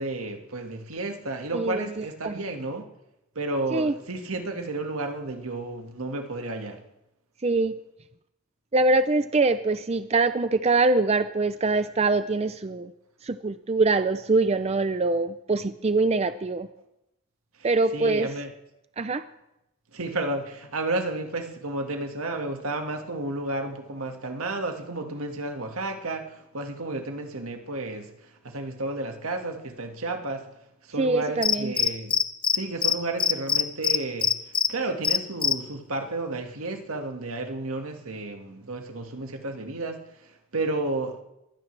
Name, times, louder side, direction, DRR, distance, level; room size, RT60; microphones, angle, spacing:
voice 1, 0.0-2.9 3.4-6.8 17.9-18.5 19.9-30.5 30.8-32.2 32.5-34.4 34.7-41.2, right 2 dB, 80° right, 1.8 m, -32 dB
voice 2, 1.5-2.4 3.7-3.9 7.4-7.8 8.7-12.9 13.2-16.7 17.6-18.3 19.0-19.2 31.0-31.7, right 3 dB, 30° right, 0.4 m, -24 dB
Cricket, 31.4-32.6 32.8-32.9 33.2-34.7 35.0-35.5, left 7 dB, 25° left, 0.5 m, -21 dB
22.0 x 15.5 x 3.3 m
head